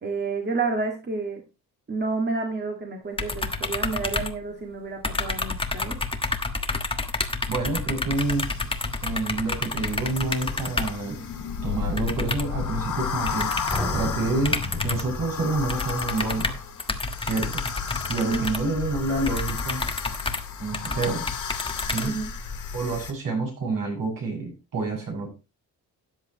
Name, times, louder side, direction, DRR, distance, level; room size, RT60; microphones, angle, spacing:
voice 1, 0.0-1.4 1.9-6.0 18.2-18.5 22.0-22.3, right 4 dB, 30° right, 2 dB, 2.0 m, -29 dB
sound 1, 3.2-4.8 5.0-11.1 12.0-12.6 13.3-13.9 14.4-15.2 15.7-22.5, left 3 dB, 15° left, 1.3 m, -30 dB
voice 2, 7.5-8.4 9.0-11.2 11.6-13.5 13.9-16.6 17.2-17.6 18.1-19.8 20.6-21.2 21.9-22.1 22.7-25.3, right 3 dB, 65° right, 0 dB, 7.1 m, -28 dB
sound 2, 8.2-23.1, left 6 dB, 55° left, 2.3 m, -33 dB
sound 3, 13.7-15.5, equal, ahead, 2.9 m, -34 dB
13.0 x 9.1 x 3.0 m, 0.29 s
cardioid pair, 105°, 36 cm